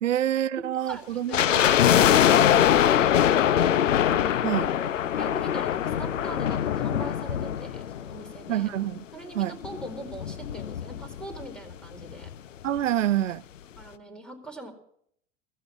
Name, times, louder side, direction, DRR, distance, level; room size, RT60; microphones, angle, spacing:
voice 1, 0.0-1.6 4.4-4.7 8.5-9.0 9.3-9.6 12.6-13.4, right 12 dB, 85° right, 0.6 m, -27 dB
voice 2, 0.8-3.9 4.6-8.7 9.1-12.3 13.8-14.7, right 2 dB, ahead, 4.4 m, -42 dB
sound 1, 1.3-8.6 8.8-8.9 9.6-11.4 11.7-11.8 12.0-12.3 12.8-12.9, left 10 dB, 85° left, 0.8 m, -23 dB
15.5 x 15.0 x 6.0 m
hypercardioid pair, 85°, 37 cm